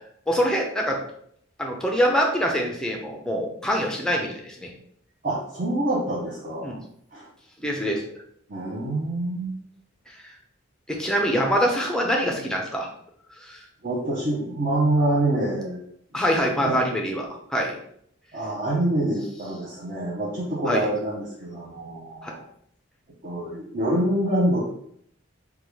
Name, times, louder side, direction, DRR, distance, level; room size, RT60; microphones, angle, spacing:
voice 1, 0.3-1.0 1.6-4.7 6.6-6.8 7.6-8.0 10.9-12.9 13.4-13.6 16.1-17.8 20.7-20.9 22.2-22.3, equal, 5° left, 0 dB, 0.5 m, -24 dB
voice 2, 5.2-6.8 7.1-7.3 8.5-9.5 13.8-15.9 16.1-16.2 16.6-16.8 18.3-22.4 23.2-24.7, right 1 dB, 40° right, -7 dB, 0.7 m, -26 dB
3.6 x 2.3 x 3.1 m, 0.67 s
head